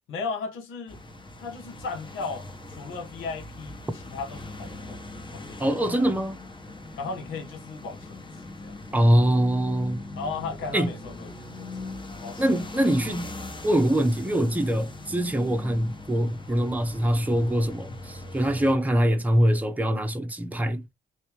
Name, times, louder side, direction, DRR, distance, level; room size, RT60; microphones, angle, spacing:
voice 1, 0.1-1.0 1.4-5.0 5.3-6.0 7.0-8.2 8.6-8.8 10.2-11.3 11.6-11.7 12.2-12.5, left 4 dB, 90° left, 1.6 m, -36 dB
sound 1, 0.9-18.7, left 2 dB, 25° left, 1.3 m, -40 dB
voice 2, 5.6-6.4 8.9-10.0 10.7-10.9 12.4-13.3 13.6-20.8, equal, 10° right, 0.8 m, -23 dB
3.4 x 2.9 x 3.2 m
cardioid pair, 90°, 20 cm